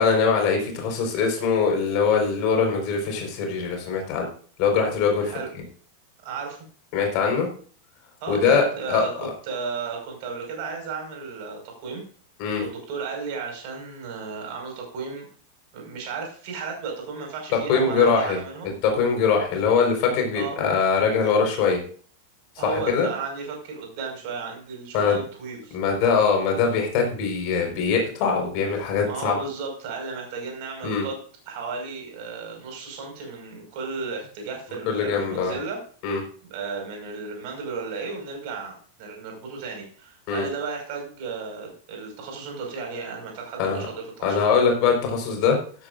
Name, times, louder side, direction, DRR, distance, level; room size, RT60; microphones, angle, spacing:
voice 1, 0.0-4.3 4.6-5.6 6.9-7.5 8.3-9.3 12.4-12.6 17.7-18.4 18.8-21.8 22.6-23.1 24.9-25.2 25.7-29.4 30.8-31.0 34.9-35.5 36.0-36.2 40.3-40.4 43.6-43.8 44.2-45.6, left 5 dB, 45° left, 2 dB, 4.7 m, -22 dB
voice 2, 6.2-6.6 8.2-12.0 12.6-15.3 15.7-18.7 20.3-20.6 22.6-25.8 29.0-31.2 31.5-35.8 36.5-44.6, right 4 dB, 45° right, 2 dB, 5.5 m, -34 dB
15.0 x 13.0 x 2.6 m, 0.44 s
figure-of-eight pair, 90°, 0 cm